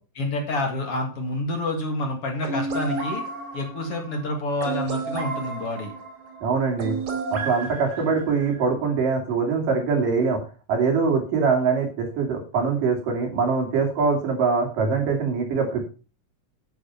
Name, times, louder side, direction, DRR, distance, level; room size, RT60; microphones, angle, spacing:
voice 1, 0.2-3.2 3.5-5.9 8.0-8.1, left 2 dB, 45° left, 3 dB, 2.8 m, -28 dB
Mod arp, 2.4-8.6, right 4 dB, 55° right, 5.7 m, -32 dB
voice 2, 6.4-7.0 7.3-10.4 10.7-15.9, right 5 dB, 75° right, 2 dB, 4.6 m, -23 dB
9.5 x 8.8 x 5.8 m, 0.35 s
omnidirectional pair, 3.9 m